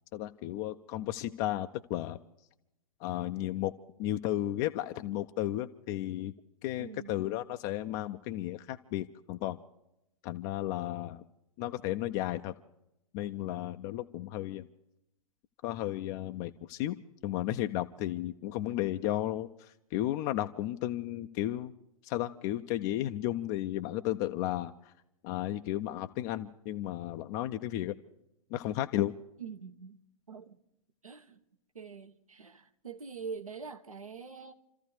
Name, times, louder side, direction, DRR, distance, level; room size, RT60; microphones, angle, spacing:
voice 1, 0.1-2.2 3.0-3.7 4.0-6.3 6.6-9.6 10.2-11.2 11.6-12.5 13.1-14.7 15.6-17.0 17.2-21.7 22.0-24.9 25.2-27.9 28.5-29.1, left 14 dB, 30° left, 0.6 m, -34 dB
voice 2, 6.8-7.2 29.4-30.0 30.3-30.6 31.0-31.4 31.7-34.5, right 6 dB, 75° right, 1.3 m, -44 dB
29.0 x 14.0 x 3.3 m
figure-of-eight pair, 105°, 18 cm